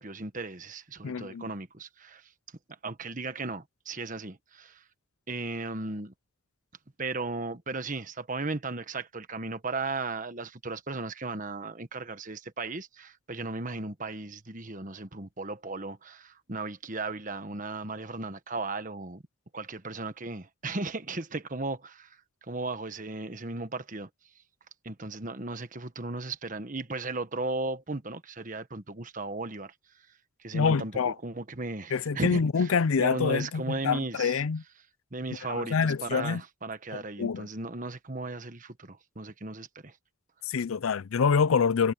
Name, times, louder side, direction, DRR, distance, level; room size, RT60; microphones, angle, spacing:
voice 1, 0.0-2.3 2.8-4.8 5.3-6.1 7.0-19.2 19.5-24.1 24.8-29.7 30.4-32.7 33.0-34.4 35.1-40.0, right 3 dB, 40° right, 1.4 m, -36 dB
voice 2, 1.0-1.5 30.5-31.1 31.9-34.6 35.5-36.4 36.9-37.5 40.5-41.9, left 5 dB, 90° left, 0.5 m, -26 dB
head